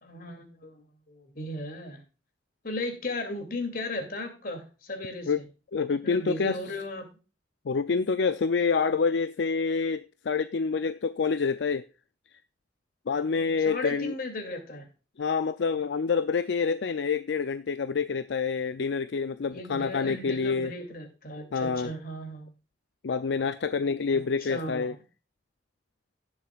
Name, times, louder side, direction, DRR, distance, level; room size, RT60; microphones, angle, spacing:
voice 1, 0.0-2.0 2.6-5.5 6.0-7.1 13.6-14.9 19.5-22.5 24.1-24.9, left 1 dB, 55° left, 2.7 m, -36 dB
voice 2, 5.7-6.6 7.7-11.8 13.1-14.1 15.2-20.7 21.5-21.9 23.0-24.9, left 5 dB, 75° left, 0.5 m, -27 dB
17.5 x 7.2 x 2.4 m
head